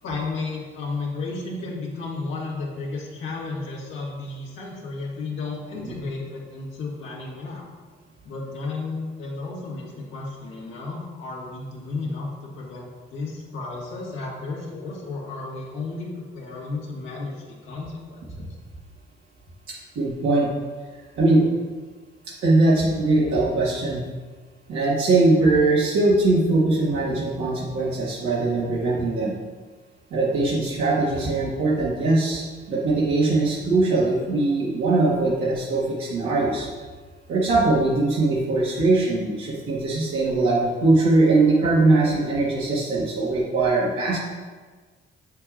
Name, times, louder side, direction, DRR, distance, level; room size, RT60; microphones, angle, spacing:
voice 1, 0.0-7.6 8.2-18.5, left 3 dB, 80° left, -3 dB, 1.7 m, -33 dB
voice 2, 19.7-20.5 21.2-21.4 22.3-24.0 24.7-29.3 30.1-36.7 37.3-44.2, right 2 dB, 85° right, -7 dB, 1.5 m, -21 dB
7.1 x 6.4 x 2.5 m, 1.4 s
cardioid pair, 90°, 20 cm